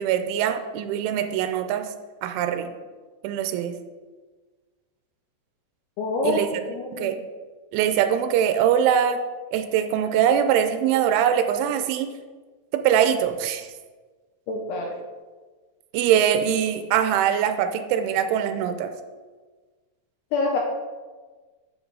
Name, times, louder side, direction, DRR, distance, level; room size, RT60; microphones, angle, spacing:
voice 1, 0.0-1.9 2.2-2.7 3.2-3.7 6.2-7.2 7.7-9.2 9.5-12.1 12.7-13.7 15.9-18.9, right 9 dB, 85° right, 8 dB, 3.1 m, -22 dB
voice 2, 6.0-6.4 6.7-7.2 14.5-14.9 20.3-20.6, left 3 dB, 75° left, 0 dB, 2.5 m, -26 dB
8.1 x 6.4 x 4.7 m, 1.4 s
omnidirectional pair, 5.5 m